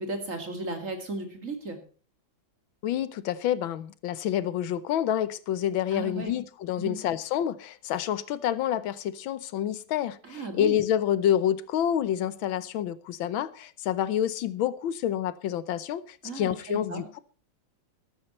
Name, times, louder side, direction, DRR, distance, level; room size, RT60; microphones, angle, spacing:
voice 1, 0.0-1.8 5.9-6.3 6.8-7.0 10.2-10.8 16.2-17.1, right 2 dB, 40° right, 5 dB, 2.7 m, -35 dB
voice 2, 2.8-17.2, left 10 dB, 85° left, 16 dB, 1.6 m, -28 dB
13.0 x 13.0 x 4.2 m, 0.39 s
omnidirectional pair, 2.1 m